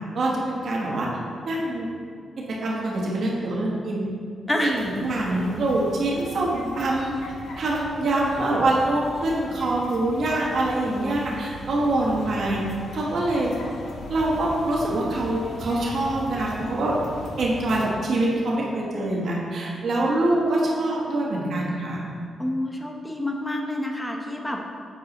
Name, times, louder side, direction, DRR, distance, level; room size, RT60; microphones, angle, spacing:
voice 1, 0.1-1.1 1.4-1.9 2.5-4.1 4.6-7.1 7.6-12.6 12.9-13.5 14.1-17.0 17.4-22.0, right 2 dB, 70° right, -4 dB, 1.2 m, -24 dB
sound 1, 4.7-17.8, left 1 dB, 85° left, 0.7 m, -39 dB
voice 2, 22.4-24.6, left 1 dB, 10° left, 1 dB, 0.8 m, -28 dB
7.4 x 4.6 x 2.9 m, 2.3 s
cardioid pair, 65°, 0 cm